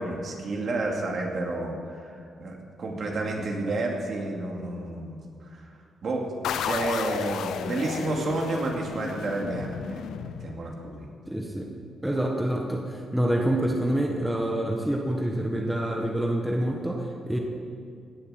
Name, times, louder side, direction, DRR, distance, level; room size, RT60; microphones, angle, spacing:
voice 1, 0.0-5.7 6.0-6.3 6.6-11.1, right 2 dB, 50° right, 0 dB, 2.3 m, -31 dB
sound 1, 6.4-11.0, left 8 dB, 85° left, 0.6 m, -33 dB
voice 2, 11.3-11.7 12.0-17.4, right 1 dB, 5° right, 0 dB, 1.3 m, -27 dB
17.5 x 7.8 x 6.5 m, 2.4 s
cardioid pair, 115°, 0 cm